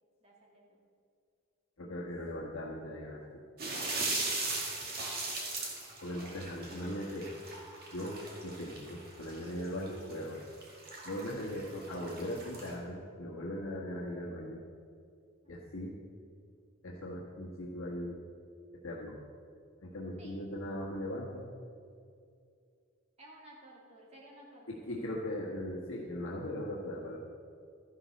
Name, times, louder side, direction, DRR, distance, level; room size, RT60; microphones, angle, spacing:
voice 1, 0.2-0.8 4.3-4.7 5.2-5.3 15.4-15.6 20.2-20.3 23.2-25.0, right 1 dB, 30° right, -3 dB, 2.3 m, -56 dB
voice 2, 1.8-3.2 6.0-7.3 7.9-10.5 11.0-14.6 15.5-15.9 16.8-18.2 18.8-19.2 19.8-21.5 24.7-27.2, left 1 dB, 75° left, -4 dB, 1.4 m, -39 dB
sound 1, 3.6-12.7, right 2 dB, 45° right, 2.1 m, -39 dB
13.0 x 11.0 x 4.1 m, 2.3 s
head